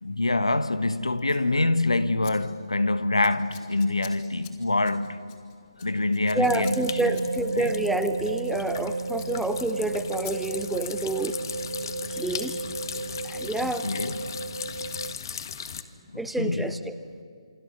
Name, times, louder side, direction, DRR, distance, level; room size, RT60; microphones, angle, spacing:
voice 1, 0.0-5.3 5.8-7.1 7.5-7.7 13.6-14.4 16.1-16.7, left 2 dB, 85° left, 1.3 m, -26 dB
Scissors, 1.2-1.5 2.2-2.3 2.6-2.9 3.2-8.9 9.1-9.3 9.6-9.7 10.2-10.3 10.7-11.6 12.4-12.5, left 11 dB, 25° left, 3.3 m, -49 dB
voice 2, 6.3-11.4 12.1-12.6 13.2-13.9 16.2-17.0, right 2 dB, ahead, 0.8 m, -28 dB
sound 1, 6.4-15.1, right 3 dB, 80° right, 0.7 m, -33 dB
sound 2, 6.5-15.8, left 7 dB, 45° left, 1.6 m, -38 dB
28.0 x 24.5 x 7.5 m
figure-of-eight pair, 150°, 3 cm